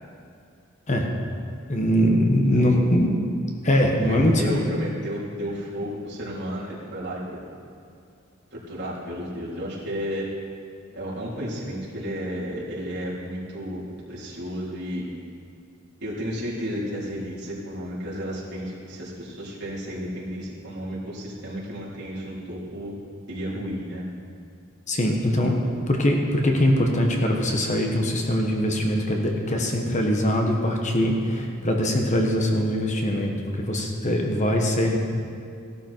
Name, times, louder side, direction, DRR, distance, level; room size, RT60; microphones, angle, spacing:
voice 1, 1.7-3.1 3.6-4.6 24.9-25.6 25.9-35.0, equal, 35° left, 1 dB, 1.3 m, -22 dB
voice 2, 2.5-3.1 3.9-7.2 8.5-10.3 10.9-15.0 16.0-22.9 23.3-24.1, equal, 55° right, -7 dB, 3.9 m, -32 dB
16.0 x 12.0 x 4.6 m, 2.5 s
head